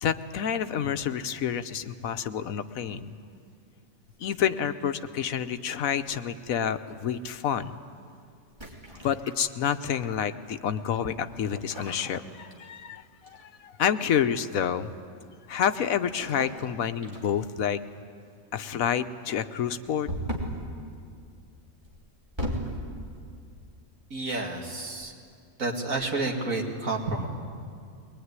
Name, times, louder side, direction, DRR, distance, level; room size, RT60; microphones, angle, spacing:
voice 1, 0.0-3.1 4.2-7.8 9.0-13.0 13.3-14.9 15.5-17.8 18.5-20.1, left 8 dB, 80° left, 10 dB, 1.3 m, -28 dB
sound 1, 4.1-4.9 6.1-6.4 8.5-10.1 11.5-12.9 13.2-13.6 16.0-16.7 17.0-17.6 20.1-20.7 21.8-22.8, equal, 20° right, 3.2 m, -36 dB
voice 2, 24.1-25.1 25.6-27.3, right 2 dB, 75° right, 0 dB, 2.8 m, -30 dB
22.0 x 20.5 x 9.7 m, 2.3 s
omnidirectional pair, 1.4 m